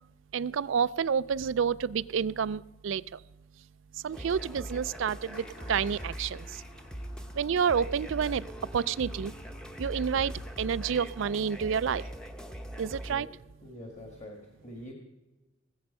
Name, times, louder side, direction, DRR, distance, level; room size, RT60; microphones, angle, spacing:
voice 1, 0.3-3.2 3.9-6.6 7.3-8.4 8.7-9.3 9.8-12.0 12.8-13.3, right 7 dB, 60° right, 19 dB, 0.4 m, -29 dB
sound 1, 4.1-13.2, right 1 dB, 5° left, 0.8 m, -41 dB
Engine starting, 5.3-10.6, equal, 65° left, 3.9 m, -51 dB
voice 2, 13.6-14.9, left 1 dB, 30° left, 1 dB, 1.6 m, -45 dB
19.5 x 7.9 x 5.4 m, 1.1 s
head